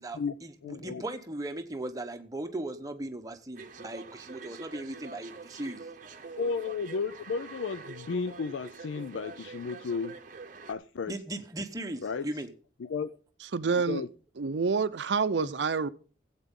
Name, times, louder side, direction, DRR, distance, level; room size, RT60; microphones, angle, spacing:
voice 1, 0.0-5.9 11.1-12.5, right 1 dB, 20° right, 0.9 m, -38 dB
voice 2, 0.6-1.0 6.4-10.2 10.7-11.1 12.0-12.3 12.8-13.2 13.9-14.1 15.4-15.5, left 5 dB, 85° left, 0.4 m, -33 dB
sound 1, 3.5-10.7, right 4 dB, 45° right, 0.8 m, -46 dB
voice 3, 13.5-14.0 14.4-15.9, right 5 dB, 70° right, 0.5 m, -27 dB
16.0 x 8.2 x 3.7 m
head